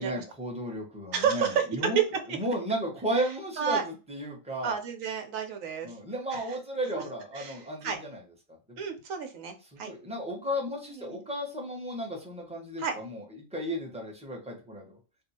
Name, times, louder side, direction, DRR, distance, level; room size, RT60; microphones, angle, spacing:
voice 1, 0.0-2.0 2.3-4.8 5.8-8.2 8.5-8.8 9.7-15.0, equal, 5° right, -1 dB, 0.8 m, -34 dB
voice 2, 1.1-1.7 1.9-2.0 2.3-2.4 3.6-3.8 4.6-5.9 6.3-6.4 6.9-7.0 7.3-8.0 8.8-9.9 10.9-11.2 12.8-13.0, right 7 dB, 80° right, 6 dB, 1.1 m, -30 dB
2.7 x 2.4 x 4.1 m, 0.31 s
omnidirectional pair, 1.4 m